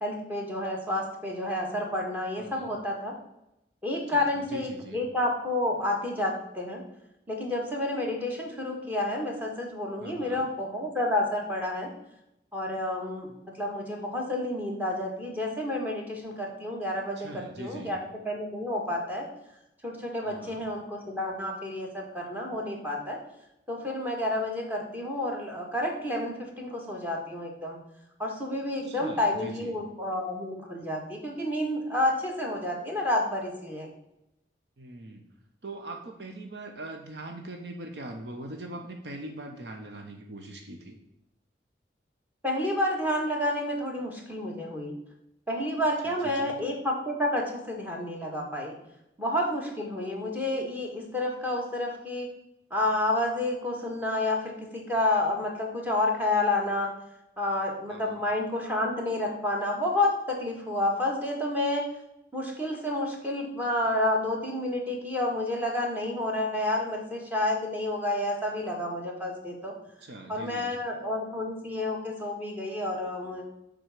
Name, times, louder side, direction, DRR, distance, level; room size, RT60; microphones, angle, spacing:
voice 1, 0.0-3.1 3.8-6.8 7.3-11.9 12.5-18.0 18.2-19.3 19.8-23.2 23.7-27.8 28.2-33.9 42.4-44.9 45.5-48.7 49.2-52.3 52.7-56.9 57.4-61.8 62.3-69.7 70.3-73.4, left 1 dB, 10° right, 0 dB, 1.6 m, -30 dB
voice 2, 2.4-2.7 4.1-5.0 10.0-10.4 17.2-18.0 20.2-20.6 28.8-29.7 34.8-35.3 35.6-41.0 46.0-46.6 57.9-58.2 70.0-70.7, right 2 dB, 70° right, 3 dB, 0.9 m, -42 dB
7.6 x 3.9 x 6.5 m, 0.85 s
head